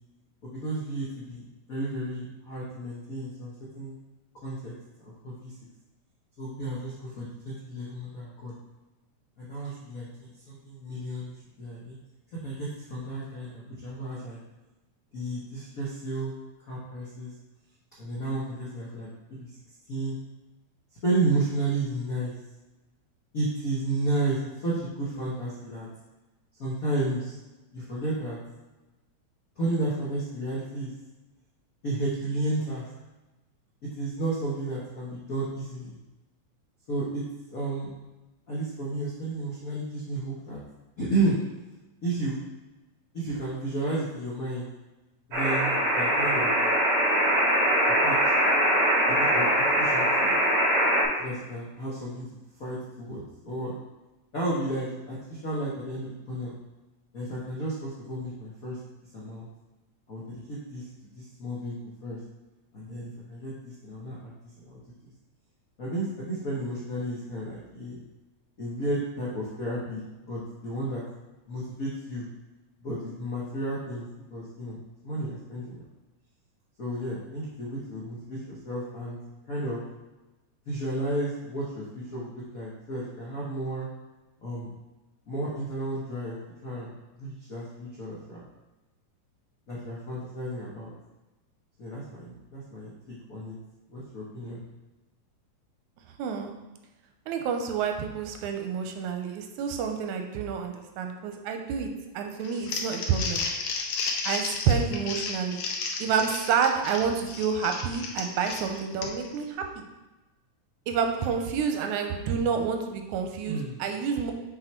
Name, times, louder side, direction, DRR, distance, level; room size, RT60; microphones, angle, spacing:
voice 1, 0.4-1.4 1.7-3.9 4.4-4.7 5.0-5.5 6.4-8.5 9.4-11.9 12.4-14.4 15.1-16.3 16.6-17.3 18.0-19.6 19.9-20.1 21.0-22.3 23.3-25.9 26.6-27.4 27.7-28.4 29.6-30.9 31.8-32.9 33.8-36.0 36.9-37.2 37.5-37.9 38.5-40.6 41.0-41.4 42.0-42.4 43.1-44.7 45.3-46.5 47.9-48.3 49.1-50.3 51.2-52.3 52.6-53.7 54.3-56.6 57.1-58.8 59.1-59.5 60.1-60.9 61.1-61.7 62.0-62.2 62.7-65.1 65.8-68.0 68.6-71.0 71.5-72.2 72.8-75.8 76.8-79.2 79.5-79.8 80.6-83.9 84.4-84.7 85.3-88.5 89.7-90.9 91.8-93.5 93.9-94.6 113.5-113.8, right 2 dB, 65° left, -7 dB, 0.8 m, -32 dB
sound 1, 45.3-51.0, equal, 50° right, 2.4 m, -22 dB
voice 2, 96.2-96.5 97.3-103.4 104.2-105.6 106.0-109.8 110.9-114.3, right 6 dB, 85° right, 5 dB, 2.1 m, -28 dB
Crumpling crinkling, 102.4-109.4, left 4 dB, 80° left, 2.1 m, -33 dB
6.5 x 4.5 x 4.4 m, 1.1 s
omnidirectional pair, 3.4 m